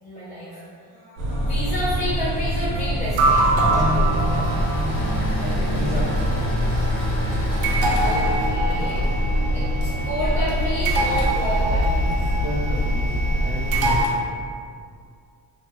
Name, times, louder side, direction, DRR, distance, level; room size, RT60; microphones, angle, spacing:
voice 1, 0.0-4.5 8.0-12.2, equal, 15° left, -10 dB, 0.6 m, -31 dB
sound 1, 1.2-14.1, equal, 70° right, 0.6 m, -22 dB
Engine / Mechanisms, 3.6-12.0, left 1 dB, 55° left, 0.9 m, -35 dB
voice 2, 5.4-6.9 12.4-13.2 13.4-14.2, right 1 dB, 25° right, -8 dB, 0.4 m, -32 dB
2.7 x 2.5 x 2.2 m, 2.2 s
cardioid pair, 90°, 48 cm